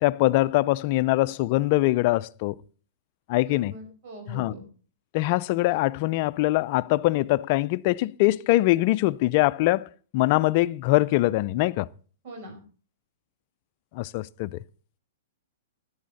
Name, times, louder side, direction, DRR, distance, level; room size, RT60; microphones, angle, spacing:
voice 1, 0.0-2.5 3.3-3.7 4.3-4.5 5.1-9.9 10.1-11.9 13.9-14.6, left 18 dB, 50° left, 0.5 m, -23 dB
voice 2, 3.4-4.6 12.2-12.6, right 1 dB, 55° right, 5.0 m, -42 dB
13.5 x 10.5 x 4.1 m
hypercardioid pair, 115°, 0 cm